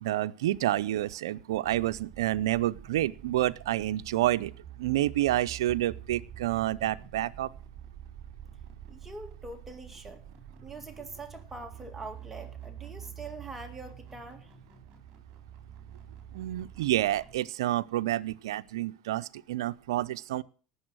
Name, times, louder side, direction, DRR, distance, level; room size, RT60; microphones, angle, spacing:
voice 1, 0.0-4.5 4.8-7.5 16.3-20.4, right 14 dB, 85° right, 10 dB, 0.5 m, -29 dB
sound 1, 1.6-17.4, right 9 dB, 40° right, 4.3 m, -47 dB
voice 2, 8.9-10.2 10.6-14.5, right 3 dB, 10° right, 4 dB, 2.2 m, -43 dB
18.0 x 7.0 x 6.2 m, 0.39 s
supercardioid pair, 110°, 2 cm